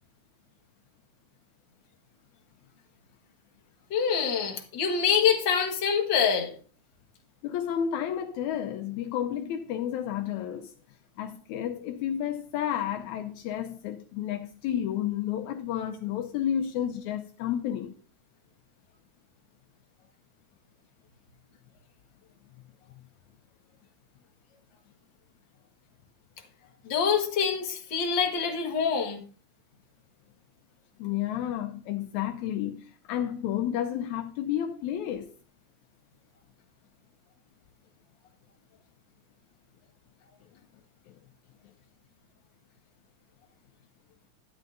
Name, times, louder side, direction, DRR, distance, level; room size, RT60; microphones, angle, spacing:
voice 1, 3.9-6.5 26.9-29.2, left 7 dB, 45° left, 1.9 m, -25 dB
voice 2, 7.4-10.7 11.2-17.9 31.0-35.3 41.1-41.2, left 10 dB, 80° left, 1.9 m, -31 dB
11.5 x 9.1 x 2.6 m
omnidirectional pair, 3.5 m